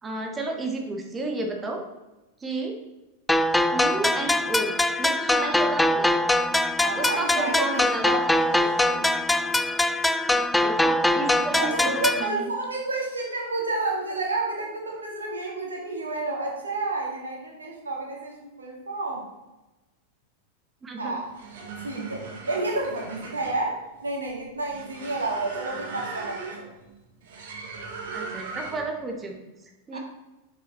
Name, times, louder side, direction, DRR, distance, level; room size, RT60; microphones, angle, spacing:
voice 1, 0.0-1.8 2.4-2.7 3.7-6.1 6.9-8.2 10.3-12.5 20.8-21.2 28.1-29.4 29.9-30.0, right 2 dB, 15° right, 3 dB, 1.5 m, -32 dB
sound 1, 3.3-12.3, left 1 dB, 5° left, 0.3 m, -23 dB
voice 2, 6.8-9.0 11.6-19.2 21.0-21.3 21.8-26.7 29.9-30.0, right 2 dB, 75° right, -1 dB, 2.0 m, -30 dB
sound 2, 21.2-29.0, right 4 dB, 55° right, 1.5 m, -39 dB
6.9 x 6.5 x 4.3 m, 1.0 s
figure-of-eight pair, 90°, 0 cm